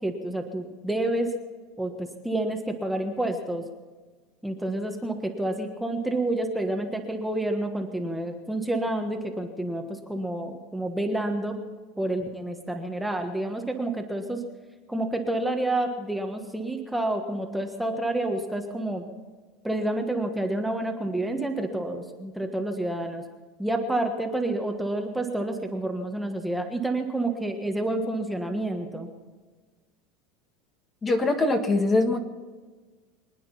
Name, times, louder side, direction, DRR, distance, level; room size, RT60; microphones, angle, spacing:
voice 1, 0.0-1.3 1.8-3.6 4.4-11.6 12.0-14.4 14.9-19.0 19.6-23.2 23.6-29.1, right 1 dB, 5° right, 3 dB, 1.4 m, -29 dB
voice 2, 31.0-32.2, left 2 dB, 20° left, 6 dB, 1.5 m, -22 dB
24.5 x 9.5 x 5.7 m, 1.4 s
supercardioid pair, 130°, 0 cm